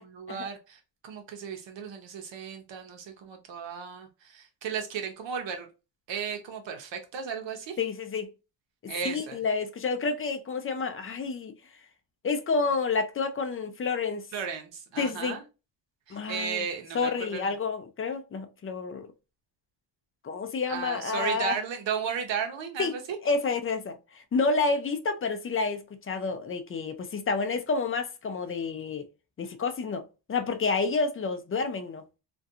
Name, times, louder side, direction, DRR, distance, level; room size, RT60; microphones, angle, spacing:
voice 1, 0.2-5.7 6.1-7.8 8.9-9.4 14.3-15.4 16.1-17.5 20.7-23.0, right 7 dB, 75° right, 0.8 m, -35 dB
voice 2, 7.8-8.3 8.8-11.5 12.2-14.3 15.0-15.4 16.1-16.7 16.9-19.1 20.2-21.6 22.8-22.9 23.2-29.0 29.4-32.0, left 4 dB, 30° left, 0.5 m, -29 dB
2.4 x 2.2 x 2.6 m
cardioid pair, 85°, 44 cm